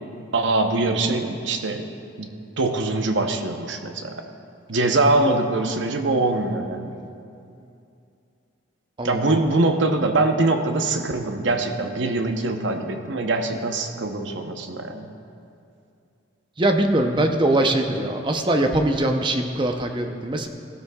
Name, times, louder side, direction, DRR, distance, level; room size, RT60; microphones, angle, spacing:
voice 1, 0.3-1.9 2.2-4.2 4.7-7.0 9.0-15.1, right 2 dB, 75° right, 5 dB, 0.8 m, -23 dB
voice 2, 9.0-9.4 16.6-20.5, right 1 dB, 25° right, 4 dB, 0.6 m, -22 dB
16.5 x 12.5 x 2.3 m, 2.6 s
head